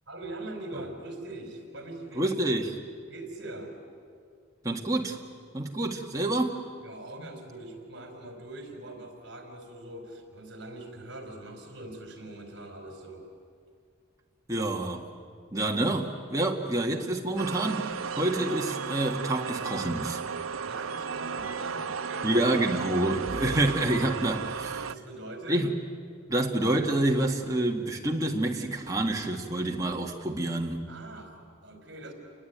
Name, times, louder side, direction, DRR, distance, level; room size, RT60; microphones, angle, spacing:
voice 1, 0.1-2.4 3.1-3.7 6.8-13.3 14.5-14.7 20.7-22.4 24.9-25.7 30.9-32.1, right 2 dB, 55° right, 4 dB, 4.6 m, -42 dB
voice 2, 2.2-2.8 4.6-5.2 5.5-6.6 14.5-15.0 15.5-17.9 18.2-20.2 22.2-24.8 25.5-25.7 26.3-30.8, right 1 dB, 15° right, 0 dB, 1.9 m, -27 dB
sound 1, 17.4-25.0, right 6 dB, 90° right, 0.6 m, -34 dB
29.0 x 20.5 x 9.4 m, 2.2 s
head